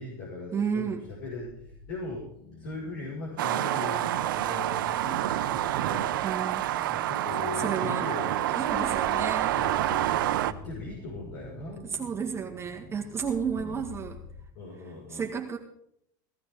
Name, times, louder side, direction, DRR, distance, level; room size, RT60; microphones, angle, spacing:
voice 1, 0.0-2.3 2.6-6.1 6.9-8.4 8.8-10.1 10.5-11.9 13.5-13.8 14.5-15.3, left 2 dB, 75° left, -6 dB, 6.0 m, -39 dB
voice 2, 0.5-1.0 6.2-6.6 7.6-8.1 8.5-9.6 11.9-14.2 15.1-15.6, right 6 dB, 25° right, 0 dB, 1.9 m, -32 dB
sound 1, 0.7-14.4, left 4 dB, 50° left, 7.7 m, -48 dB
sound 2, 3.4-10.5, right 13 dB, 80° right, 0.7 m, -28 dB
17.0 x 13.5 x 3.9 m, 0.72 s
hypercardioid pair, 100°, 11 cm